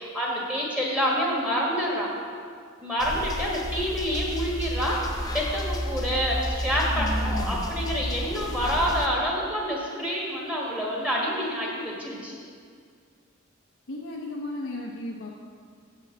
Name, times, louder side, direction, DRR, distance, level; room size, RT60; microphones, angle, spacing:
voice 1, 0.0-2.1 2.8-12.3, equal, 5° right, -4 dB, 1.5 m, -27 dB
sound 1, 3.0-9.1, equal, 20° left, 0.5 m, -31 dB
voice 2, 6.9-7.7 13.9-15.3, left 1 dB, 65° left, -3 dB, 0.7 m, -34 dB
6.9 x 5.7 x 7.2 m, 2.1 s
head